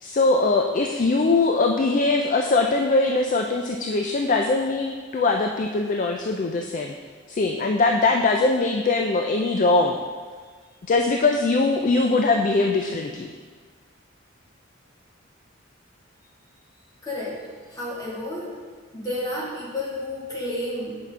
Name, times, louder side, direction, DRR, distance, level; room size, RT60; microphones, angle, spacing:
voice 1, 0.0-6.9 7.3-10.0 10.9-13.3, left 3 dB, 40° left, 3 dB, 0.3 m, -21 dB
voice 2, 17.0-17.4 17.7-18.5 18.9-21.0, left 1 dB, 20° left, -8 dB, 2.1 m, -31 dB
7.8 x 5.8 x 3.6 m, 1.6 s
head